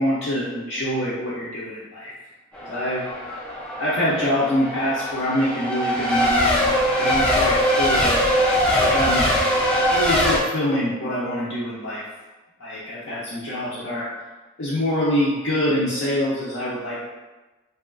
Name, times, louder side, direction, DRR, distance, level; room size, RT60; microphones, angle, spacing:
voice 1, 0.0-2.1 2.6-3.1 3.8-8.2 8.8-9.3 9.9-12.1 12.6-14.1 14.6-17.1, equal, 65° left, -9 dB, 0.5 m, -25 dB
Race car auto racing / Accelerating revving vroom / Mechanisms, 2.5-10.4, equal, 5° left, 0.3 m, -21 dB
2.7 x 2.3 x 2.4 m, 1.2 s
head